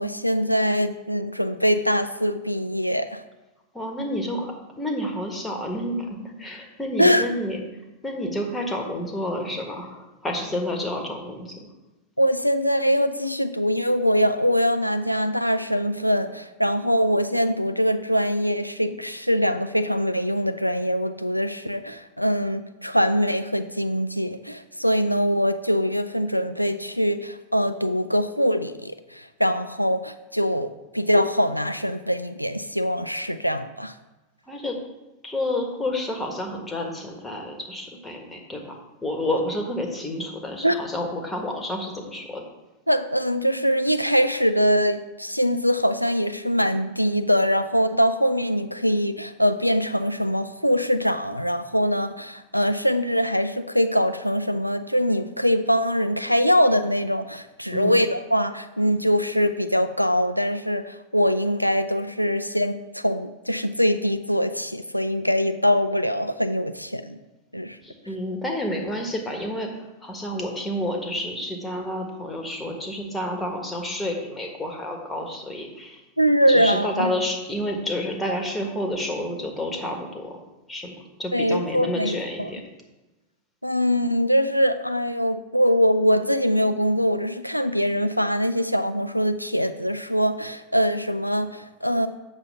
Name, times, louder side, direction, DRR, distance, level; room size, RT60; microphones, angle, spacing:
voice 1, 0.0-3.2 7.0-7.3 12.2-33.9 40.6-40.8 42.9-67.2 67.5-67.8 76.2-77.1 81.3-82.5 83.6-92.1, equal, 90° left, 9 dB, 0.3 m, -23 dB
voice 2, 3.7-7.6 8.0-11.7 34.5-34.8 35.2-38.7 39.0-42.4 57.7-58.0 67.8-76.0 76.5-80.4 80.7-82.6, left 1 dB, 10° left, 2 dB, 1.4 m, -30 dB
8.1 x 6.6 x 3.5 m, 1.1 s
figure-of-eight pair, 90°, 0 cm